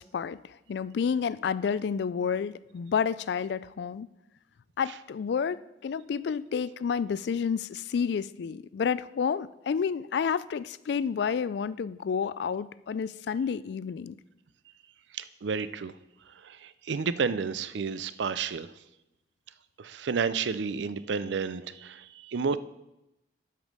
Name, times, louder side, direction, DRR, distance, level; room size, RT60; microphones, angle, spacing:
voice 1, 0.0-4.1 4.8-14.2, left 6 dB, 65° left, 18 dB, 0.3 m, -30 dB
voice 2, 15.1-15.9 16.3-18.7 19.8-22.6, right 5 dB, 75° right, 15 dB, 0.5 m, -31 dB
12.0 x 5.2 x 5.4 m, 0.92 s
head